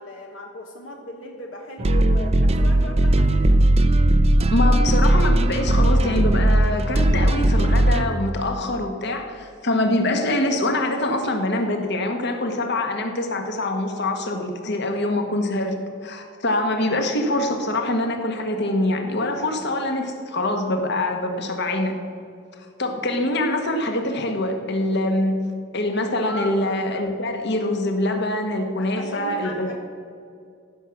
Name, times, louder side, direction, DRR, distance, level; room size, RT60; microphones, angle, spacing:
voice 1, 0.0-3.5 26.2-26.6 28.8-29.8, left 1 dB, 75° left, 2 dB, 1.2 m, -36 dB
sound 1, 1.8-8.1, right 1 dB, 30° right, 0.5 m, -18 dB
voice 2, 4.5-15.8 16.0-21.9 22.8-25.4 25.7-29.8, left 1 dB, 60° left, 4 dB, 1.4 m, -24 dB
15.0 x 6.2 x 7.1 m, 2.3 s
head